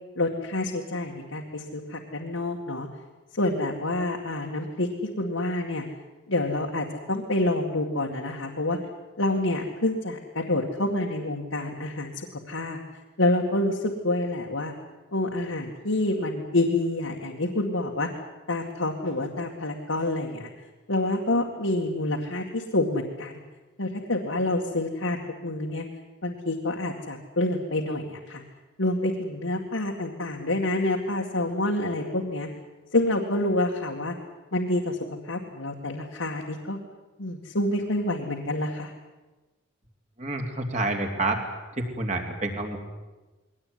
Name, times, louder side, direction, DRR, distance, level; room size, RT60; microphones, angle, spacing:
voice 1, 0.2-2.9 3.3-4.9 5.2-5.8 6.3-8.8 9.2-12.8 13.2-14.7 15.1-18.1 18.5-20.5 20.9-23.4 23.8-25.8 26.2-28.4 28.8-32.5 32.9-34.2 34.5-35.0 35.2-36.8 37.2-38.9, left 2 dB, 80° left, 0 dB, 2.2 m, -27 dB
voice 2, 40.2-41.4 41.8-42.8, right 2 dB, 35° right, 3 dB, 3.1 m, -28 dB
22.0 x 18.5 x 9.7 m, 1.2 s
head